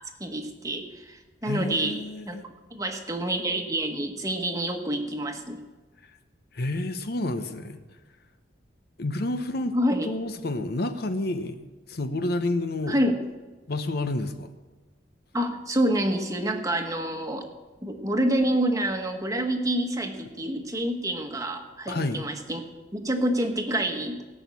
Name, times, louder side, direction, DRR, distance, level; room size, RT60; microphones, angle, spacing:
voice 1, 0.0-2.0 2.2-2.4 2.7-5.6 9.7-10.1 12.9-13.1 15.3-17.4 17.8-22.6 22.9-24.2, right 1 dB, 20° right, 4 dB, 1.3 m, -27 dB
voice 2, 1.4-2.4 6.5-7.8 9.0-9.8 10.0-13.0 13.7-14.5 21.9-22.2, left 2 dB, 55° left, 9 dB, 0.8 m, -29 dB
18.0 x 6.3 x 8.4 m, 1.2 s
head